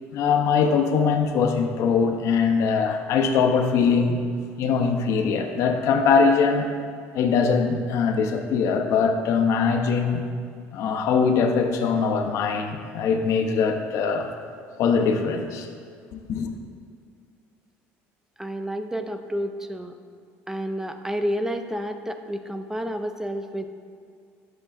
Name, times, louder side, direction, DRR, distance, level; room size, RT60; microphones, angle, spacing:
voice 1, 0.1-4.2 4.6-6.7 7.1-10.2 10.7-14.3 14.8-15.7 16.1-16.5, left 5 dB, 65° left, 4 dB, 0.6 m, -22 dB
voice 2, 18.4-19.9 20.5-23.7, equal, 10° right, 7 dB, 0.3 m, -30 dB
7.8 x 5.9 x 2.4 m, 2.2 s
supercardioid pair, 100°, 6 cm